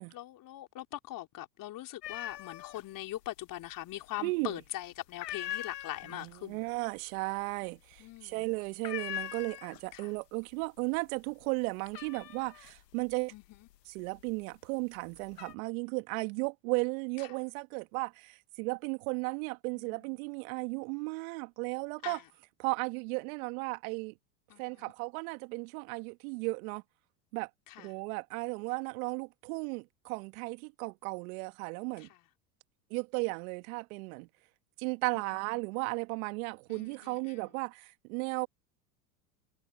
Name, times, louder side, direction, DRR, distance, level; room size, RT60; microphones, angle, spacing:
voice 1, 0.1-6.6 8.0-8.5 9.9-10.2 13.3-13.7 19.7-20.2 22.0-22.2 24.5-24.9 27.7-27.9 32.0-32.1 36.7-37.4, left 14 dB, 40° left, 4.0 m, -42 dB
sound 1, 2.0-2.8 3.2-3.9 4.3-4.7 5.0-10.1 10.4-11.0 11.3-14.4 14.9-15.5, left 13 dB, 75° left, 1.2 m, -42 dB
voice 2, 4.2-4.6 6.1-13.3 13.9-22.2 22.6-24.1 24.6-26.8 27.3-27.5 27.8-32.1 32.9-34.3 34.8-38.5, right 30 dB, 55° right, 2.2 m, -35 dB
hypercardioid pair, 95°, 49 cm